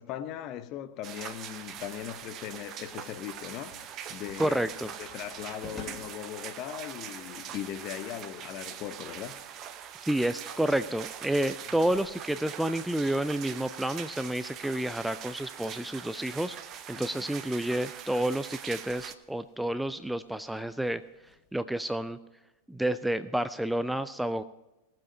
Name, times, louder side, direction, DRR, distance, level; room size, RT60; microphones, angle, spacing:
voice 1, 0.0-9.4 16.9-17.2, left 11 dB, 40° left, 0.8 m, -39 dB
sound 1, 1.0-19.1, right 9 dB, 35° right, 0.8 m, -42 dB
sound 2, 2.0-21.5, left 2 dB, 15° left, 2.5 m, -56 dB
voice 2, 4.4-4.9 10.0-16.6 16.9-21.0 21.5-22.2 22.7-24.4, right 1 dB, 5° right, 0.4 m, -30 dB
18.5 x 7.6 x 5.4 m
figure-of-eight pair, 90°, 0 cm